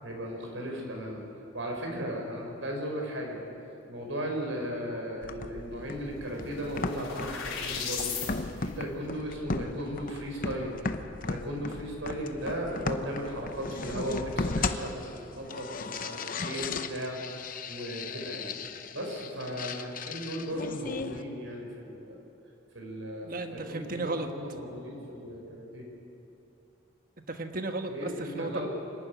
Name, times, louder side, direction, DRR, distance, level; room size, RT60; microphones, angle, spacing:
voice 1, 0.0-1.2 1.5-3.4 3.9-8.1 8.6-10.8 11.3-17.2 17.7-18.5 18.9-22.1 22.8-25.9 27.9-28.7, equal, 85° right, 0 dB, 5.1 m, -36 dB
sound 1, 5.2-21.2, left 3 dB, 45° left, 0.8 m, -36 dB
sound 2, 5.5-5.6 5.8-8.3, left 6 dB, 85° left, 4.2 m, -36 dB
voice 2, 23.2-24.3 27.3-28.7, right 2 dB, 45° right, 6 dB, 1.4 m, -34 dB
26.0 x 11.0 x 9.5 m, 2.8 s
head